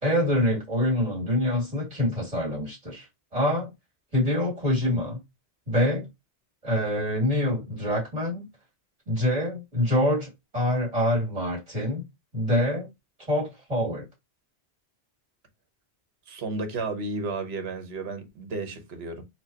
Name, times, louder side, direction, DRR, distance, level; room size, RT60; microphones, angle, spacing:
voice 1, 0.0-3.1 3.3-3.7 4.1-5.2 5.7-6.1 6.6-8.5 9.1-12.0 12.3-12.9 13.3-14.1, left 1 dB, 35° right, 2.3 m, -25 dB
voice 2, 16.3-19.2, right 3 dB, 70° right, 1.1 m, -33 dB
4.4 x 2.3 x 2.7 m
omnidirectional pair, 1.1 m